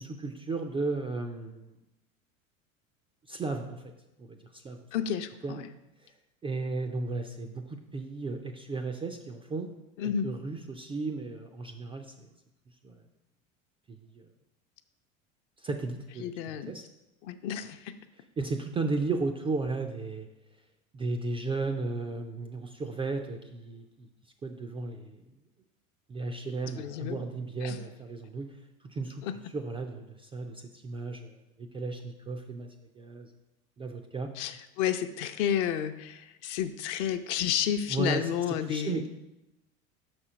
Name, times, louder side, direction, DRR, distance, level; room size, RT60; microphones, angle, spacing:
voice 1, 0.0-1.7 3.3-3.8 4.2-4.8 5.4-5.6 6.4-9.7 10.0-12.3 12.8-13.0 13.9-14.3 15.6-16.9 18.4-20.3 20.9-24.1 24.4-25.2 26.1-28.5 28.9-29.2 29.5-32.7 33.0-33.3 33.8-34.3 37.9-38.2 38.7-39.1, right 3 dB, 15° right, 5 dB, 0.3 m, -34 dB
voice 2, 4.9-5.7 10.0-10.3 16.2-16.7 17.2-17.9 26.7-27.3 27.6-27.8 29.2-29.3 34.4-39.1, left 9 dB, 55° left, 9 dB, 0.7 m, -31 dB
6.1 x 4.4 x 5.9 m, 0.94 s
hypercardioid pair, 80°, 42 cm